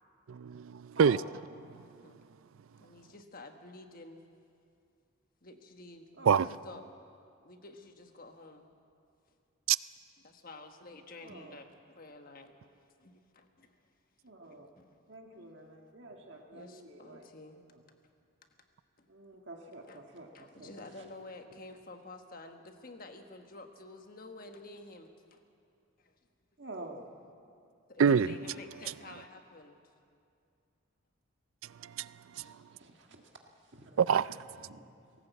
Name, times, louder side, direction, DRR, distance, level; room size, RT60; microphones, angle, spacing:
voice 1, 0.3-1.2 6.3-6.5 9.7-9.8 28.0-28.3 31.8-32.5 34.0-34.4, right 7 dB, 75° right, 0.4 m, -26 dB
voice 2, 2.8-4.2 5.4-6.8 7.4-8.7 10.2-11.7 12.0-13.8 14.4-15.0 15.3-15.5 16.3-17.6 19.0-19.1 19.9-20.0 20.3-25.4 26.0-26.1 27.9-29.8 32.4-32.7, left 2 dB, 45° left, 1.4 m, -50 dB
voice 3, 11.2-11.6 14.2-14.7 15.1-17.3 17.7-17.8 19.1-21.0 26.6-27.1 32.3-33.2 33.6-34.0 34.6-34.9, right 2 dB, 55° right, 1.6 m, -48 dB
19.0 x 17.5 x 8.2 m
head